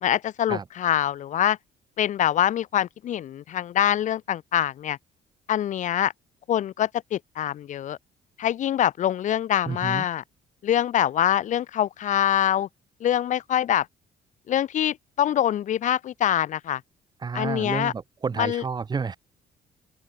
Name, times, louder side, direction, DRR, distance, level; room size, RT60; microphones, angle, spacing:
voice 1, 0.0-1.6 2.0-5.0 5.5-6.1 6.5-8.0 8.4-10.2 10.6-12.7 13.0-13.9 14.5-16.8 17.3-17.9 18.4-18.6, left 11 dB, 55° left, 1.7 m, -24 dB
voice 2, 9.7-10.1 17.2-19.2, right 5 dB, 25° right, 6.0 m, -30 dB
open air
cardioid pair, 145°, 15 cm